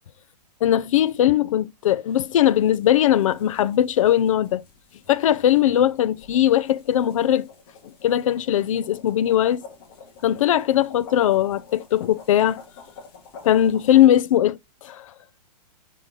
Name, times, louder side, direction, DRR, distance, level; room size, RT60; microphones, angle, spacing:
voice 1, 0.6-4.6 5.1-7.5 8.0-9.6 10.2-12.6 13.4-15.1, left 11 dB, 55° left, 0.6 m, -19 dB
sound 1, 2.1-14.1, left 5 dB, 35° left, 2.2 m, -48 dB
6.5 x 5.0 x 3.7 m
hypercardioid pair, 170°, 21 cm